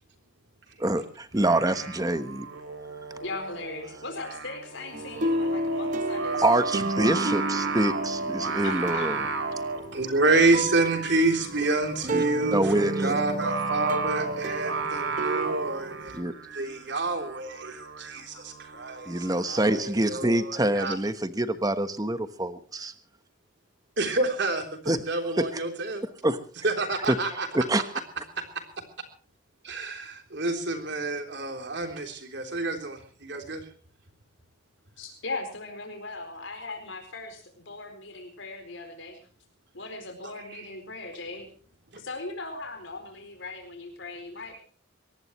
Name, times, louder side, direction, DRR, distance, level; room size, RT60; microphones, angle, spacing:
voice 1, 0.8-2.5 6.4-9.3 12.1-12.2 12.5-13.1 16.1-16.3 19.1-22.9 24.9-25.0 25.4-25.6 26.2-26.4 27.1-27.2 27.5-27.8, right 1 dB, 20° right, 10 dB, 1.1 m, -26 dB
Singing, 1.3-19.8, right 4 dB, 75° right, 3.5 m, -35 dB
voice 2, 3.2-6.4 8.6-9.1 9.4-9.5 35.0-39.2 39.7-41.5 41.9-44.6, left 3 dB, 65° left, 4 dB, 4.5 m, -38 dB
sound 1, 4.9-16.2, right 1 dB, 40° right, 0.9 m, -32 dB
voice 3, 9.9-16.2 16.5-21.0 24.0-26.0 26.6-27.5 29.6-33.6 40.5-40.6, right 2 dB, 60° right, 5 dB, 3.6 m, -28 dB
23.0 x 18.5 x 3.1 m, 0.39 s
head